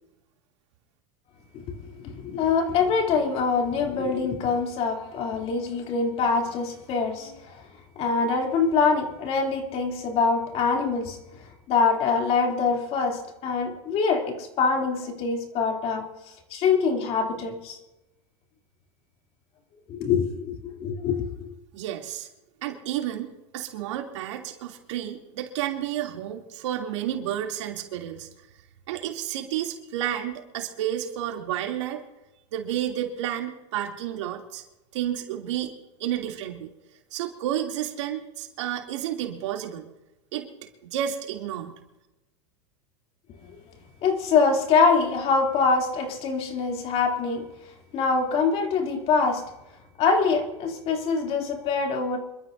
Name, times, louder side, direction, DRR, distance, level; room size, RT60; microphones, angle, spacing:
voice 1, 1.5-7.6 8.0-11.2 11.7-16.1 16.5-17.8 19.9-21.5 44.0-47.5 47.9-49.4 50.0-52.2, left 5 dB, 45° left, 3.1 m, -24 dB
voice 2, 21.7-22.3 22.6-28.3 28.9-32.0 32.5-34.6 34.9-35.7 36.0-36.7 37.1-39.9 40.3-40.5 40.8-41.8, right 11 dB, 80° right, 3.0 m, -31 dB
26.5 x 13.5 x 2.7 m
supercardioid pair, 125°, 15 cm